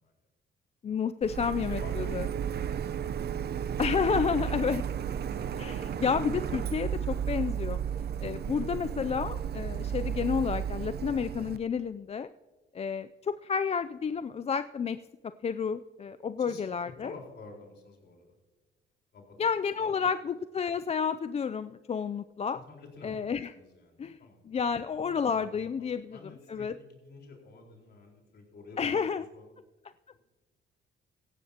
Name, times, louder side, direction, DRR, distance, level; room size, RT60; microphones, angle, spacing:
voice 1, 0.8-2.3 3.8-4.8 5.6-7.8 8.2-12.3 12.7-15.0 15.4-17.1 19.4-22.6 23.0-23.5 24.0-24.2 24.5-26.2 26.5-26.7 28.8-29.3, left 6 dB, 30° left, 12 dB, 0.4 m, -30 dB
Printer, 1.2-11.6, right 8 dB, 55° right, 0.7 m, -33 dB
voice 2, 1.4-2.7 3.2-4.1 8.2-8.6 16.4-16.6 17.0-18.3 19.1-19.4 19.8-20.1 22.7-23.2 23.6-24.8 25.8-29.1 29.3-29.4 30.2-30.3, left 3 dB, 55° left, 0 dB, 4.4 m, -50 dB
17.0 x 15.0 x 2.9 m, 1.2 s
cardioid pair, 90°, 20 cm